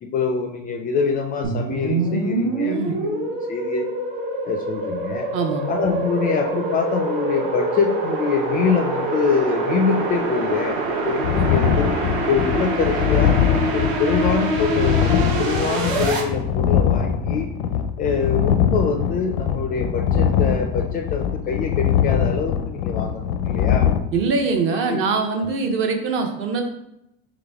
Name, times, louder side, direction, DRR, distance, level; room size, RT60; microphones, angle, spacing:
voice 1, 0.0-3.9 4.4-5.3 5.7-11.9 12.3-13.4 13.7-17.5 18.0-23.9 24.9-25.0 25.4-25.5, left 5 dB, 30° left, 3 dB, 0.3 m, -24 dB
sound 1, 1.4-16.2, right 2 dB, 65° right, 1.0 m, -25 dB
voice 2, 2.6-3.0 5.3-5.6 11.4-11.5 24.1-26.6, right 4 dB, 40° right, 4 dB, 0.7 m, -23 dB
sound 2, 11.2-24.0, left 8 dB, 85° left, 0.5 m, -22 dB
4.0 x 3.1 x 3.4 m, 0.83 s
supercardioid pair, 135°, 32 cm